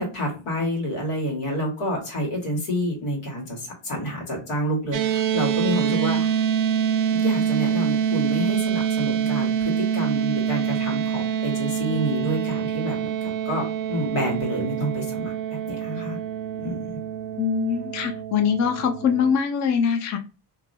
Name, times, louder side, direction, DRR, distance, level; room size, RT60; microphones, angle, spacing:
voice 1, 0.0-6.4 7.1-16.2 16.6-17.0, equal, 80° left, -2 dB, 1.8 m, -28 dB
sound 1, 4.9-19.3, right 8 dB, 40° right, 0.5 m, -26 dB
voice 2, 17.4-20.2, left 7 dB, 35° left, 5 dB, 0.5 m, -23 dB
2.9 x 2.7 x 2.6 m, 0.31 s
supercardioid pair, 75°, 50 cm